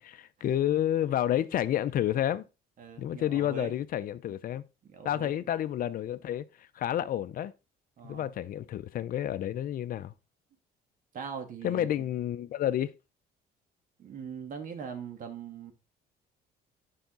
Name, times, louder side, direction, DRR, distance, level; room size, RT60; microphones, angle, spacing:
voice 1, 0.2-2.4 3.0-4.6 5.0-7.5 8.0-10.1 11.6-12.9, left 11 dB, 55° left, 0.6 m, -30 dB
voice 2, 2.8-3.7 4.8-5.5 8.0-8.3 11.1-11.9 14.0-15.7, right 7 dB, 50° right, 2.3 m, -41 dB
10.0 x 5.7 x 3.8 m
cardioid pair, 110°, 18 cm